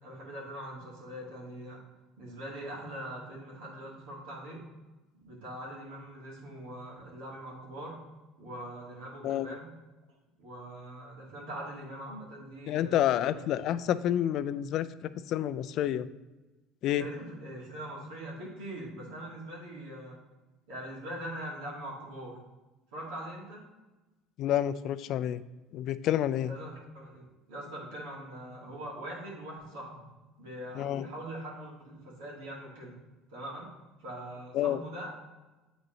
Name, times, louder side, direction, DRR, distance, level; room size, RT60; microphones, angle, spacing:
voice 1, 0.0-1.8 2.2-4.6 5.1-8.0 8.4-9.7 10.4-13.4 17.0-20.2 20.7-22.4 22.9-23.7 26.3-30.1 30.4-33.0 33.3-33.7 34.0-35.1, right 1 dB, 85° right, -3 dB, 2.1 m, -42 dB
voice 2, 9.2-9.5 12.7-16.1 16.8-17.1 24.4-25.4 25.7-26.5 30.8-31.0 34.5-34.8, left 11 dB, 55° left, 14 dB, 0.3 m, -29 dB
7.9 x 4.0 x 3.8 m, 1.1 s
cardioid pair, 115°, 0 cm